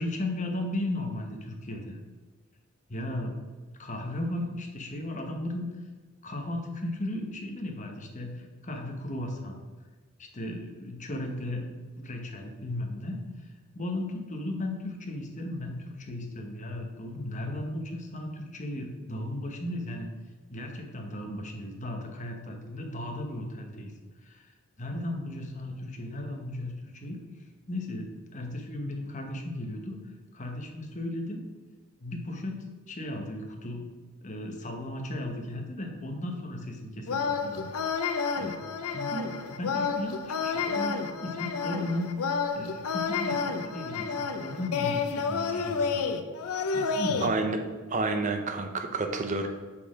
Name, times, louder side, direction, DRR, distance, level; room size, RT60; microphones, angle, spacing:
voice 1, 0.0-2.0 2.9-3.4 3.8-5.9 6.2-9.6 10.2-20.1 20.5-23.9 24.2-31.4 32.0-33.9 34.2-37.7 38.4-38.6 38.9-42.1 42.5-46.0 46.7-47.3, left 1 dB, 35° left, 3 dB, 0.9 m, -36 dB
sound 1, 37.1-47.3, left 5 dB, 80° left, 0.6 m, -30 dB
voice 2, 47.2-47.6 47.9-49.5, right 3 dB, 35° right, 6 dB, 0.5 m, -29 dB
5.7 x 4.2 x 6.2 m, 1.3 s
head